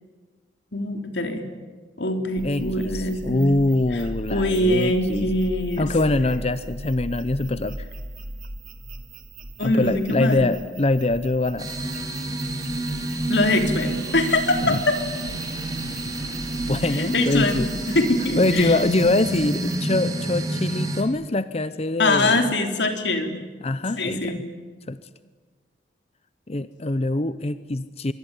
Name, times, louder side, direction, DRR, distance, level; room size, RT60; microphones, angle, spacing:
voice 1, 0.7-1.5 2.0-3.4 3.9-4.0 4.3-5.9 9.6-10.5 13.3-15.0 17.0-17.7 17.9-18.7 22.0-23.4 24.0-24.4, left 2 dB, 70° left, 5 dB, 3.6 m, -23 dB
voice 2, 2.4-5.3 5.8-7.9 9.6-11.7 14.6-14.8 16.7-17.7 18.4-22.5 23.6-24.4 24.9-25.0 26.5-28.1, left 2 dB, 35° left, 13 dB, 0.7 m, -24 dB
sound 1, 2.4-19.8, right 1 dB, 50° right, 2.6 m, -39 dB
sound 2, 11.6-21.0, right 1 dB, 20° right, 3.8 m, -29 dB
25.5 x 23.5 x 9.9 m, 1.4 s
head